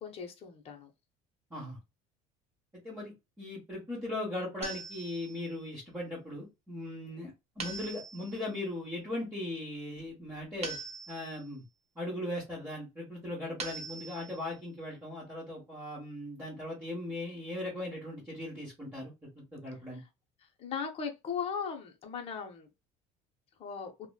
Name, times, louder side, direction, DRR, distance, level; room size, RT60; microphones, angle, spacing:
voice 1, 0.0-0.9 7.2-7.3 20.6-22.7 23.6-23.9, left 6 dB, 35° left, 0.6 m, -38 dB
voice 2, 2.8-7.3 7.6-10.7 11.1-11.6 11.9-20.0, left 1 dB, 15° right, 1.2 m, -39 dB
sound 1, 4.6-5.5 7.6-8.5 10.6-11.5 13.6-14.5, right 4 dB, 40° right, 0.8 m, -42 dB
3.0 x 2.1 x 2.2 m
cardioid pair, 120°, 16 cm